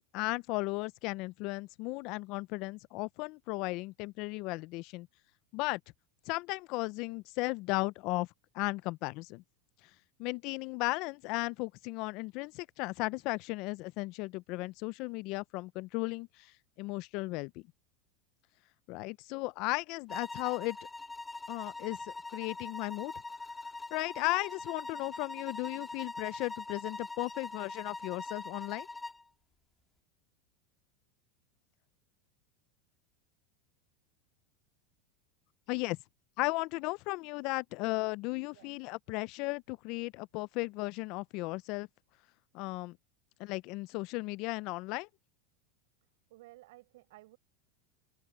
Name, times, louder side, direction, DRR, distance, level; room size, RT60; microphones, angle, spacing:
voice 1, 0.1-5.1 5.5-5.8 6.3-8.3 8.5-9.4 10.2-16.3 16.8-17.5 18.9-20.8 21.5-22.0 22.3-23.1 23.9-28.9 35.7-36.0 36.4-41.9 42.5-43.0 43.4-45.1, left 23 dB, 50° left, 0.4 m, -35 dB
sound 1, 20.1-29.2, left 3 dB, 10° left, 3.6 m, -42 dB
voice 2, 46.3-47.4, right 19 dB, 75° right, 4.5 m, -55 dB
supercardioid pair, 140°, 0 cm